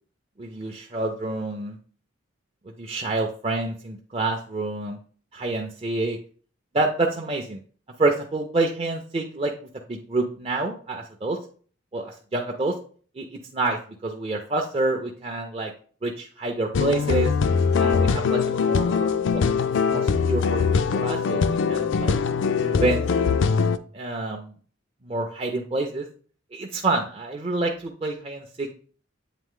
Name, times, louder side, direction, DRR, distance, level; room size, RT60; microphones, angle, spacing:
voice 1, 0.4-1.8 2.8-5.0 5.3-6.2 6.7-7.6 8.0-9.5 9.9-11.4 11.9-12.8 13.2-15.7 16.0-17.3 17.8-19.4 19.9-22.1 22.6-23.0 23.9-24.5 25.0-26.1 26.5-28.7, right 2 dB, 30° right, 0 dB, 0.5 m, -27 dB
sound 1, 16.7-23.8, left 5 dB, 65° left, 0.4 m, -22 dB
8.2 x 3.1 x 3.7 m, 0.43 s
head